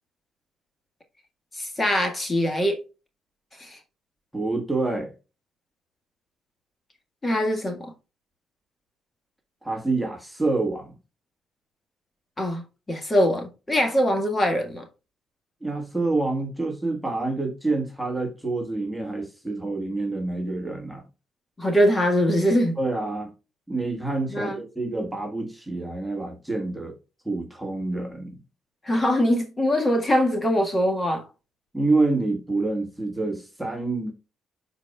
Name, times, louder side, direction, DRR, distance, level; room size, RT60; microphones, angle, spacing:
voice 1, 1.5-2.8 3.6-3.8 7.2-7.9 12.4-14.8 21.6-22.8 24.3-24.6 28.8-31.2, equal, 25° left, 1.7 m, -23 dB
voice 2, 4.3-5.1 9.6-10.9 15.6-21.0 22.8-23.3 23.7-27.0 27.2-28.4 31.7-34.1, right 2 dB, 5° right, 1.6 m, -27 dB
12.0 x 4.2 x 2.3 m
cardioid pair, 90°, 0 cm